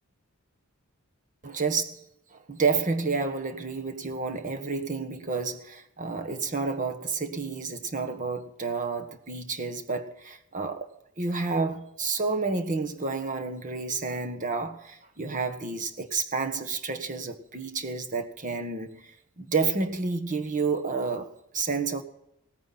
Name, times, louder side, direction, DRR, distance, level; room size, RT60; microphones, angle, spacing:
voice 1, 1.4-2.0 2.3-22.0, right 4 dB, 40° right, 1.4 m, -30 dB
18.0 x 9.3 x 5.9 m
head